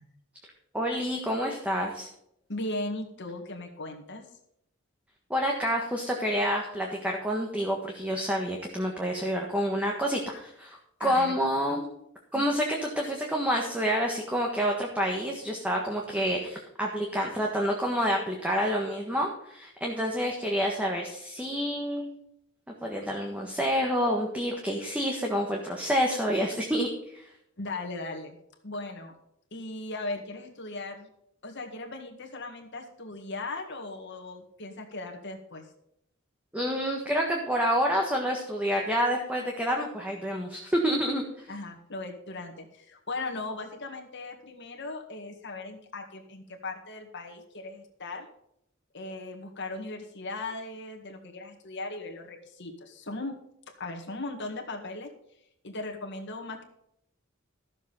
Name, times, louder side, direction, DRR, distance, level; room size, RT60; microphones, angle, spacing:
voice 1, 0.7-2.1 5.3-11.8 12.3-22.1 22.8-27.2 36.5-41.2, equal, 5° right, 0 dB, 1.5 m, -28 dB
voice 2, 2.5-4.3 11.0-11.3 11.7-11.8 12.3-12.6 27.6-28.4 28.6-29.1 29.5-31.1 31.4-35.7 41.5-48.3 48.9-53.4 53.7-55.1 55.6-56.6, left 2 dB, 60° left, 2 dB, 1.9 m, -38 dB
13.5 x 7.4 x 5.7 m, 0.76 s
head